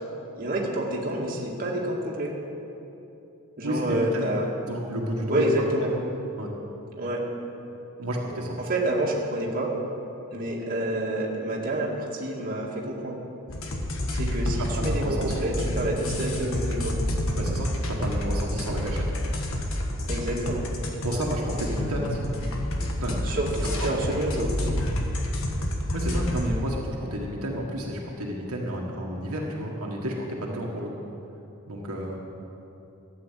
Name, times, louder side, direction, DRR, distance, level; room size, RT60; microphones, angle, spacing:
voice 1, 0.4-2.3 3.6-4.5 5.3-5.9 7.0-7.2 8.7-9.7 10.3-13.2 14.1-16.9 20.1-20.6 23.3-24.5, right 1 dB, 40° right, -3 dB, 2.0 m, -28 dB
voice 2, 3.6-4.3 4.6-5.5 6.4-6.5 7.9-8.6 14.6-15.4 17.3-19.1 21.0-22.3 23.0-23.3 23.6-23.9 25.9-30.9 31.7-32.2, equal, 70° right, -2 dB, 1.7 m, -31 dB
sound 1, 13.5-26.5, left 1 dB, 65° left, 1.5 m, -29 dB
13.0 x 8.9 x 7.5 m, 2.8 s
head